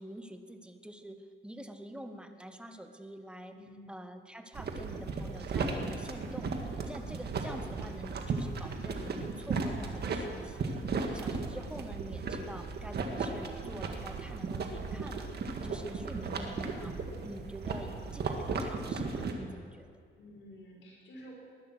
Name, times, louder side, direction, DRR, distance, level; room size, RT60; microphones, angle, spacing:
voice 1, 0.0-3.6 3.9-15.3 15.6-17.0 17.2-19.9, right 1 dB, 5° right, 7 dB, 1.3 m, -46 dB
voice 2, 3.5-3.9 20.2-21.3, equal, 75° left, -2 dB, 5.8 m, -51 dB
sound 1, 4.5-19.3, right 4 dB, 55° right, 1.9 m, -36 dB
19.5 x 11.5 x 6.3 m, 2.1 s
cardioid pair, 90°, 20 cm